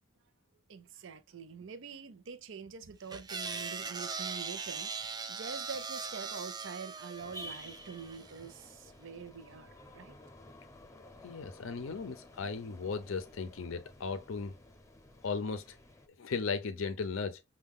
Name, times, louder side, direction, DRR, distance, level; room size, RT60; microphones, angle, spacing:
voice 1, 0.7-10.2, right 5 dB, 65° right, 0.6 m, -45 dB
sound 1, 3.1-8.5, right 5 dB, 20° right, 0.4 m, -40 dB
sound 2, 7.2-16.1, equal, 15° left, 0.7 m, -52 dB
voice 2, 11.2-14.5 15.2-15.8 16.2-17.4, left 5 dB, 75° left, 0.6 m, -36 dB
6.2 x 2.3 x 3.6 m
head